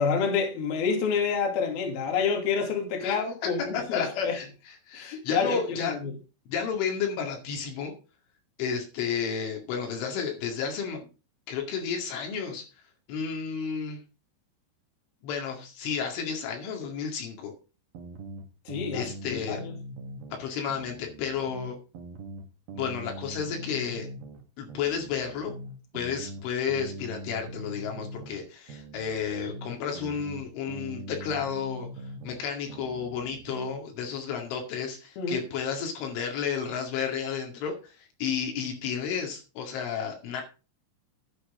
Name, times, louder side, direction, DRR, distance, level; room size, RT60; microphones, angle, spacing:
voice 1, 0.0-4.4 4.9-6.1 18.7-19.7 35.2-35.4, left 5 dB, 55° left, 4.1 m, -28 dB
voice 2, 3.7-4.5 4.9-6.0 6.5-7.9 8.6-11.1 11.5-12.7 13.1-14.0 15.2-17.5 18.9-19.6 20.3-21.8 22.8-24.1 24.6-25.6 25.9-31.9 32.2-40.4, left 7 dB, 70° left, 4.6 m, -32 dB
sound 1, 17.9-20.4 20.7-24.4 24.7-28.4 28.7-32.4 32.7-33.8, right 1 dB, 60° right, 3.1 m, -42 dB
12.0 x 9.7 x 3.7 m
omnidirectional pair, 5.8 m